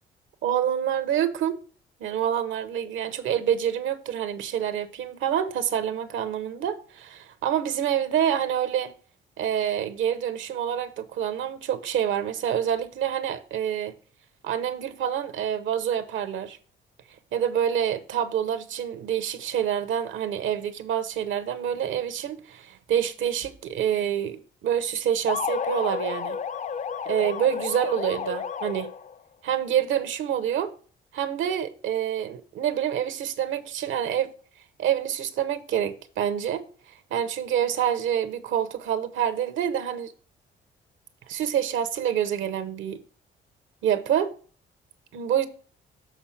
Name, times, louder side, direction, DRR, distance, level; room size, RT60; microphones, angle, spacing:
voice 1, 0.4-1.6 2.0-8.9 9.4-13.9 14.4-16.6 17.3-26.4 27.1-28.9 29.4-30.7 31.1-34.3 34.8-36.6 37.1-40.1 41.3-43.0 43.8-44.3 45.1-45.5, right 9 dB, 80° right, 0.9 m, -27 dB
sound 1, 25.3-29.2, left 7 dB, 35° left, 0.4 m, -31 dB
7.1 x 4.1 x 5.8 m
cardioid pair, 90°, 20 cm